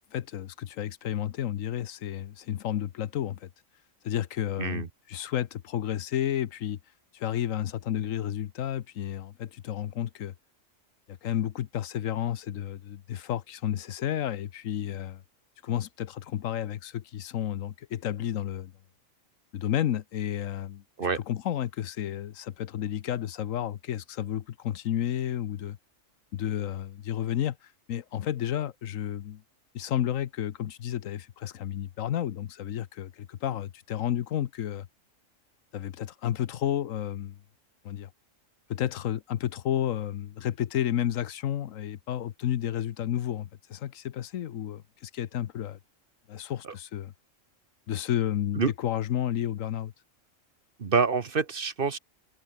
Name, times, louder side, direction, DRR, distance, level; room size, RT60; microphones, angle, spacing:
voice 1, 0.1-3.5 4.0-6.8 7.1-10.3 11.1-15.2 15.6-18.7 19.5-20.8 21.1-25.8 26.3-27.6 27.9-29.4 29.7-34.9 35.7-37.4 37.8-38.1 38.7-45.8 46.3-47.1 47.9-49.9, left 11 dB, 80° left, 1.2 m, -31 dB
voice 2, 50.8-52.0, right 5 dB, 45° right, 1.3 m, -26 dB
omnidirectional pair, 1.4 m